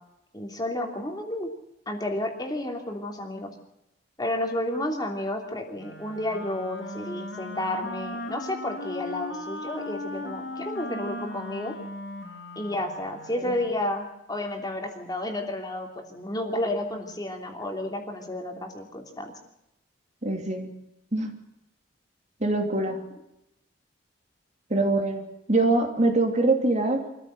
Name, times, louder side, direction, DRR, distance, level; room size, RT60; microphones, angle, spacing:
voice 1, 0.3-1.5 1.9-3.5 4.2-11.7 12.5-19.3 22.9-23.0, left 1 dB, 20° left, 3 dB, 3.0 m, -31 dB
Wind instrument woodwind instrument, 5.8-13.8, left 2 dB, 80° left, 4.5 m, -38 dB
voice 2, 20.2-20.7 21.1-21.3 22.4-23.0 24.7-27.0, right 2 dB, 40° right, 4 dB, 2.9 m, -24 dB
25.0 x 14.5 x 8.0 m, 0.87 s
head